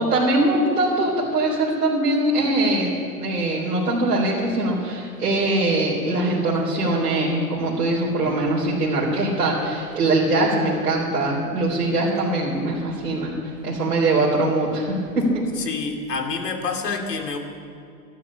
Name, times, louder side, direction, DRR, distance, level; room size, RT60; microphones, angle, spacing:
voice 1, 0.0-15.5, right 2 dB, 85° right, -5 dB, 3.9 m, -22 dB
voice 2, 15.6-17.4, left 4 dB, 80° left, 4 dB, 2.7 m, -27 dB
13.5 x 12.0 x 8.5 m, 2.3 s
hypercardioid pair, 120°, 47 cm